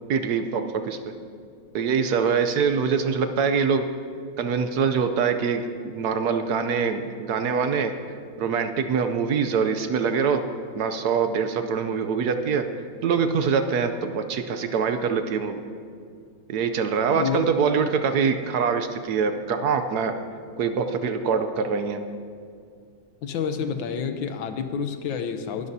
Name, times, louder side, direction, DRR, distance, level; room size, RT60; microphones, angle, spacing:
voice 1, 0.1-1.0 1.7-3.8 4.4-7.9 8.4-10.4 10.7-12.7 13.0-15.6 16.5-20.1 20.6-22.0, right 6 dB, 65° right, 8 dB, 1.0 m, -24 dB
voice 2, 17.2-17.5 23.2-25.7, left 7 dB, 70° left, 8 dB, 1.5 m, -29 dB
21.5 x 12.5 x 2.8 m, 2.2 s
omnidirectional pair, 2.3 m